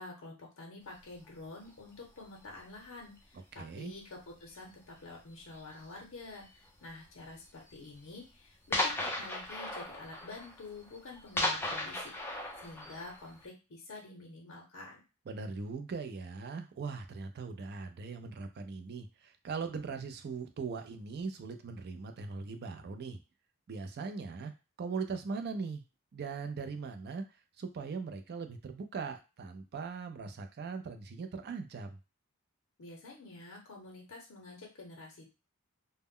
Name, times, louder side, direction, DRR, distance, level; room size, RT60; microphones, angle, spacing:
voice 1, 0.0-4.0 4.4-15.0 32.8-35.3, left 3 dB, 65° left, -1 dB, 0.7 m, -48 dB
sound 1, 1.1-1.3 2.0-2.5 2.7-3.2 3.5-3.8 4.3-4.4 4.6-4.7 5.5-6.0 6.8-6.9 7.2-7.3 7.7-7.8 8.1-8.2 8.7-13.4, left 2 dB, 10° left, 0.5 m, -36 dB
voice 2, 3.5-3.9 15.3-23.2 23.7-24.5 24.8-25.8 26.1-27.2 27.6-32.0, right 4 dB, 50° right, 7 dB, 0.4 m, -40 dB
2.1 x 2.1 x 3.6 m, 0.30 s
head